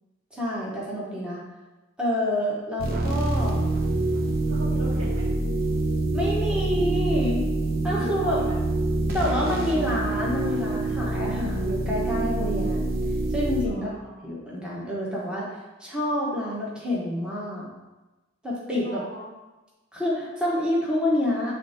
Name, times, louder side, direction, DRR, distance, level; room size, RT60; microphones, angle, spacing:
voice 1, 0.3-1.4 2.0-3.6 6.1-7.4 7.8-8.4 9.1-12.9 13.3-13.9 14.2-17.7 18.4-19.0 19.9-21.5, left 1 dB, 5° right, -6 dB, 1.2 m, -28 dB
sound 1, 2.8-13.7, right 2 dB, 50° right, 0.9 m, -26 dB
voice 2, 4.2-5.3 8.2-8.6 13.6-14.2 18.8-19.3, equal, 70° right, -5 dB, 2.0 m, -40 dB
8.3 x 3.3 x 4.4 m, 1.1 s
head